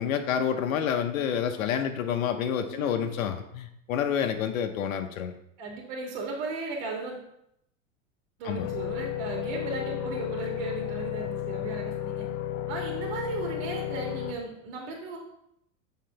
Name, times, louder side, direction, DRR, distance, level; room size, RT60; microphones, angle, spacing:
voice 1, 0.0-5.3 8.4-8.7, left 8 dB, 80° left, 6 dB, 1.0 m, -28 dB
voice 2, 2.7-3.2 5.6-7.2 8.4-12.3 12.7-15.2, right 3 dB, 60° right, -1 dB, 2.2 m, -36 dB
sound 1, 8.6-14.3, left 11 dB, 50° left, 0.9 m, -33 dB
7.5 x 3.9 x 5.6 m, 0.76 s
hypercardioid pair, 105°, 40 cm